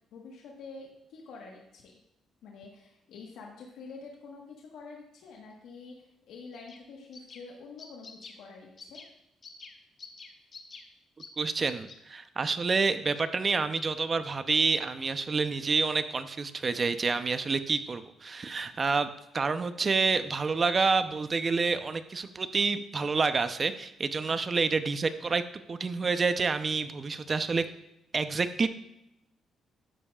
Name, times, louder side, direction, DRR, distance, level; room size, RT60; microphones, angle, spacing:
voice 1, 0.1-1.9 2.4-9.0, left 4 dB, 85° left, -1 dB, 1.4 m, -47 dB
sound 1, 6.5-6.8 7.1-7.4 7.8-8.4 8.8-9.1 9.4-9.7 10.0-10.8 11.2-11.3 11.6-11.9, left 5 dB, 45° left, 1.2 m, -46 dB
voice 2, 11.4-19.1 19.3-25.4 25.7-27.7 28.1-28.7, right 4 dB, 35° right, 10 dB, 0.7 m, -28 dB
12.0 x 8.5 x 2.4 m, 0.85 s
cardioid pair, 90°, 0 cm